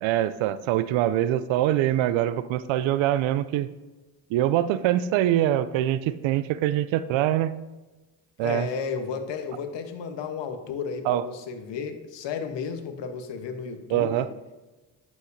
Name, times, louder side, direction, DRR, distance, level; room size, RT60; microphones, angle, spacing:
voice 1, 0.0-3.7 4.3-7.5 8.4-8.7 11.1-11.2 13.9-14.3, right 12 dB, 70° right, 15 dB, 0.5 m, -24 dB
voice 2, 8.4-14.3, left 6 dB, 60° left, 8 dB, 1.1 m, -33 dB
9.1 x 7.1 x 2.7 m, 1.2 s
hypercardioid pair, 55°, 49 cm